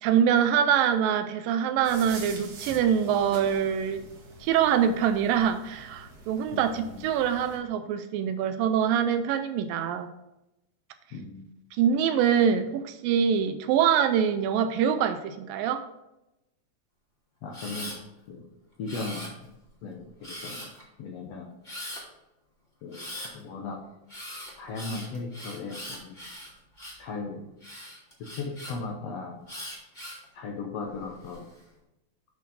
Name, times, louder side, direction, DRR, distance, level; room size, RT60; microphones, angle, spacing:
voice 1, 0.0-4.0 4.4-10.1 11.7-15.9, right 8 dB, 80° right, 10 dB, 2.2 m, -24 dB
sound 1, 1.8-7.6, right 3 dB, 55° right, 2.1 m, -45 dB
voice 2, 6.5-7.0 11.1-11.4 17.4-18.0 18.3-18.5 18.8-19.3 19.8-20.7 21.0-21.5 22.8-23.1 23.3-23.8 24.6-26.1 27.0-27.4 28.2-29.4 30.3-31.5, left 3 dB, 90° left, 1 dB, 1.4 m, -37 dB
Camera, 17.5-18.0 18.9-19.6 20.2-20.8 21.6-22.0 22.9-23.3 24.1-27.1 27.6-28.7 29.5-30.2 30.9-31.4, left 1 dB, 20° left, 1.4 m, -40 dB
8.3 x 6.1 x 4.1 m, 0.91 s
omnidirectional pair, 4.3 m